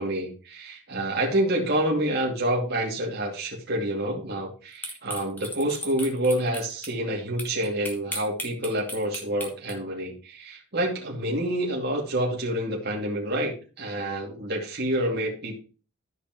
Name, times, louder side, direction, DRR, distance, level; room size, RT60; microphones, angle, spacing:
voice 1, 0.0-15.5, right 1 dB, 50° right, -2 dB, 2.6 m, -28 dB
sound 1, 4.8-6.9 7.4-9.7, left 1 dB, 10° left, 1.6 m, -35 dB
14.0 x 5.7 x 3.1 m, 0.36 s
head